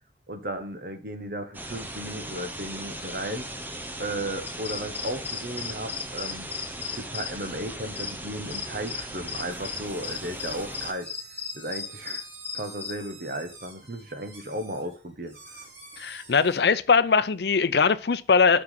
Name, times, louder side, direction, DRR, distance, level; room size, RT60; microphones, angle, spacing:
voice 1, 0.3-3.5 4.0-6.5 6.9-11.1 11.5-12.2 12.5-15.4, right 1 dB, 55° right, 1.3 m, -35 dB
sound 1, 1.5-10.9, right 1 dB, 10° right, 0.8 m, -38 dB
sound 2, 4.5-12.9, left 6 dB, 10° left, 1.8 m, -36 dB
sound 3, 9.5-16.6, right 3 dB, 80° right, 3.3 m, -48 dB
voice 2, 16.0-18.6, left 5 dB, 70° left, 0.6 m, -21 dB
6.2 x 6.1 x 5.8 m
head